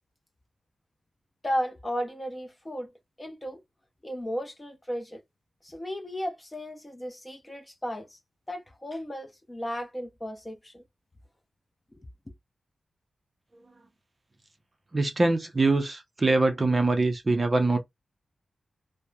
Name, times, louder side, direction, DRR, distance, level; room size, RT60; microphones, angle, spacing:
voice 1, 1.4-2.9 3.2-3.6 4.0-5.2 5.6-8.2 8.5-10.8 12.0-12.1, equal, 15° left, 0.6 m, -34 dB
voice 2, 14.9-17.8, right 2 dB, 30° right, 0.5 m, -23 dB
2.8 x 2.0 x 2.3 m
wide cardioid pair, 135°, 0 cm